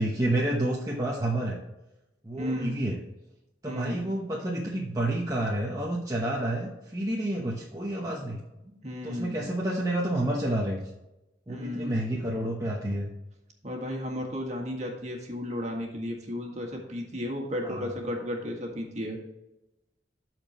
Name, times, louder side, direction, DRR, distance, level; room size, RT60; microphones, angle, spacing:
voice 1, 0.0-1.6 2.2-3.0 3.6-8.4 9.0-10.8 11.5-13.1 17.6-17.9, right 1 dB, 20° right, -3 dB, 0.9 m, -29 dB
voice 2, 2.4-2.8 3.6-4.0 8.6-9.5 11.5-12.1 13.6-19.2, left 1 dB, 40° right, 1 dB, 1.8 m, -34 dB
13.0 x 4.5 x 3.1 m, 0.95 s
head